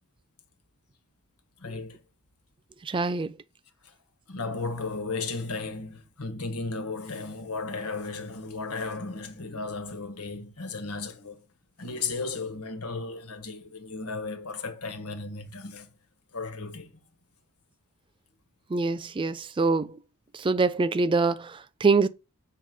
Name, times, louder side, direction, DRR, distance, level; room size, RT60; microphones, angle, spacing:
voice 1, 1.6-2.0 3.8-3.9 4.3-11.4 11.8-15.9 16.3-17.0, left 3 dB, 90° left, 1.4 m, -35 dB
voice 2, 2.8-3.3 18.7-20.0 20.3-22.1, right 4 dB, 20° right, 0.3 m, -25 dB
6.6 x 4.8 x 5.4 m
head